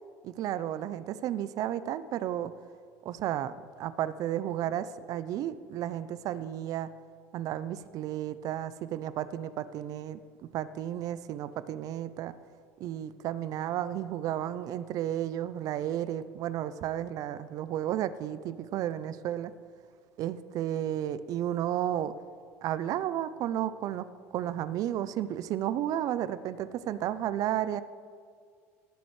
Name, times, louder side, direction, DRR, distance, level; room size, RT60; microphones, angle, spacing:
voice 1, 0.2-2.5 3.0-6.9 7.3-12.3 12.8-19.5 20.2-22.1 22.6-24.1 24.3-27.8, right 11 dB, 55° right, 15 dB, 0.5 m, -33 dB
18.5 x 7.8 x 3.2 m, 2.1 s
supercardioid pair, 90°, 7 cm